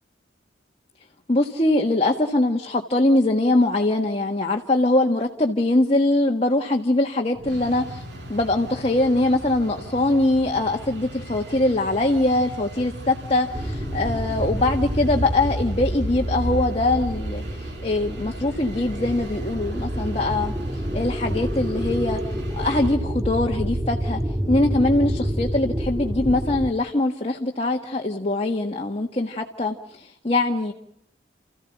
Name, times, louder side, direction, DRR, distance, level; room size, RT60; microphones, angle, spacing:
voice 1, 1.3-8.0 8.3-20.5 20.9-22.2 22.5-24.2 24.5-30.7, left 2 dB, 35° left, 2 dB, 1.5 m, -22 dB
sound 1, 7.3-23.0, equal, 65° right, 5.9 m, -39 dB
sound 2, 13.5-26.7, equal, 20° right, 1.7 m, -28 dB
29.5 x 15.0 x 9.1 m, 0.75 s
head